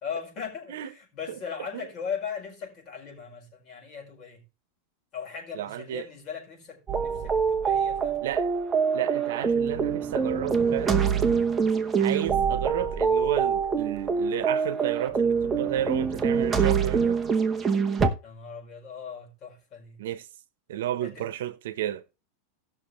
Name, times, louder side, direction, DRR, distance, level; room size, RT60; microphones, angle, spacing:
voice 1, 0.0-4.4 5.1-8.3 11.9-12.3 18.2-20.0 21.0-21.3, left 6 dB, 30° left, 5.0 m, -39 dB
voice 2, 5.5-6.1 8.2-8.5 8.9-11.1 12.0-17.2 20.0-20.3 20.7-22.0, right 11 dB, 75° right, 1.0 m, -32 dB
sound 1, 6.9-18.1, right 6 dB, 10° right, 1.0 m, -25 dB
18.0 x 6.3 x 3.2 m
supercardioid pair, 165°, 0 cm